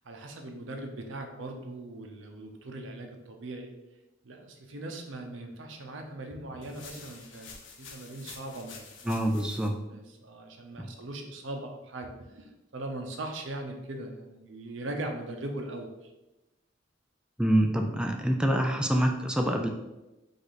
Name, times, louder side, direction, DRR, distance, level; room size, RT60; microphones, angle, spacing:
voice 1, 0.0-3.7 4.2-7.5 7.8-9.1 9.9-16.1, right 2 dB, 80° right, 3 dB, 0.7 m, -40 dB
sound 1, 6.6-9.7, left 5 dB, 75° left, 0.7 m, -48 dB
voice 2, 9.0-9.8 10.8-10.9 17.4-19.7, right 1 dB, 5° right, 3 dB, 0.3 m, -26 dB
5.1 x 2.6 x 3.9 m, 1.0 s
head